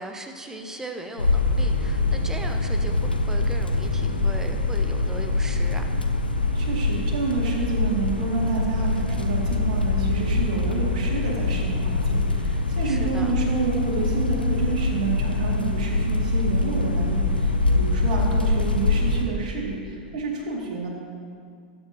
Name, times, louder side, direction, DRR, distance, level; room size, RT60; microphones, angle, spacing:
voice 1, 0.0-5.9 12.8-13.3, right 2 dB, 10° right, 5 dB, 1.0 m, -38 dB
sound 1, 1.2-19.2, left 3 dB, 90° left, 0.8 m, -24 dB
voice 2, 6.5-20.9, right 4 dB, 55° right, -2 dB, 2.8 m, -29 dB
19.0 x 8.9 x 3.1 m, 2.2 s
figure-of-eight pair, 90°, 5 cm